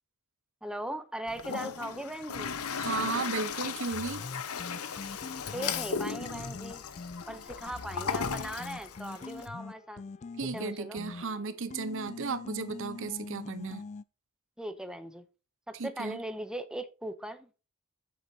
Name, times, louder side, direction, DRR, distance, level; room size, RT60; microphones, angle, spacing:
voice 1, 0.6-2.6 5.5-6.8 7.3-10.0 10.5-11.0 14.6-15.2 15.7-17.5, right 1 dB, 5° right, 0.6 m, -39 dB
Toilet flush, 1.3-9.5, left 6 dB, 90° left, 0.9 m, -36 dB
voice 2, 2.8-4.2 10.4-13.8 15.7-16.2, right 4 dB, 60° right, 0.8 m, -35 dB
sound 1, 3.9-14.0, left 3 dB, 30° left, 0.3 m, -44 dB
9.0 x 7.2 x 2.8 m
head